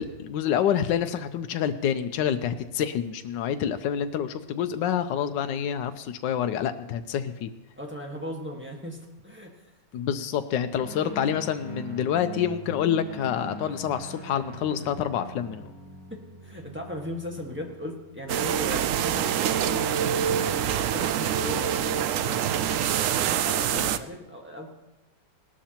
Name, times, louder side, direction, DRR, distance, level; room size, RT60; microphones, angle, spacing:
voice 1, 0.0-7.5 9.9-15.7 23.7-23.9, left 9 dB, 85° left, 8 dB, 1.3 m, -27 dB
voice 2, 7.8-9.0 9.2-9.5 16.1-20.2 20.7-22.9 23.2-24.7, left 1 dB, 5° right, 0 dB, 1.4 m, -37 dB
Guitar, 10.8-18.4, right 3 dB, 45° right, 6.2 m, -42 dB
sound 1, 18.3-24.0, right 9 dB, 80° right, 0.7 m, -25 dB
18.0 x 12.5 x 2.9 m, 0.95 s
omnidirectional pair, 1.9 m